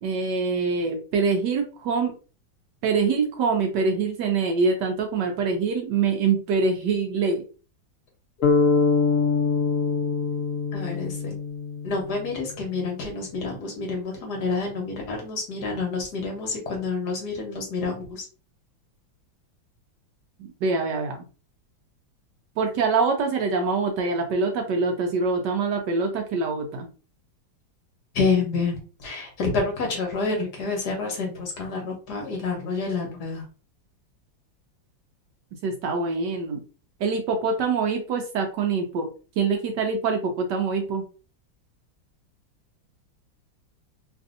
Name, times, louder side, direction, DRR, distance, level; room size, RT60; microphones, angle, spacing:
voice 1, 0.0-2.1 2.8-7.4 20.6-21.2 22.6-26.9 35.6-36.6 37.0-39.1 39.4-41.0, right 4 dB, 70° right, 3 dB, 1.1 m, -24 dB
sound 1, 8.4-12.3, left 4 dB, 85° left, 0.7 m, -23 dB
voice 2, 10.7-11.3 11.8-18.3 28.1-33.5, left 4 dB, 60° left, 1 dB, 1.4 m, -28 dB
3.3 x 2.5 x 2.5 m, 0.35 s
omnidirectional pair, 2.1 m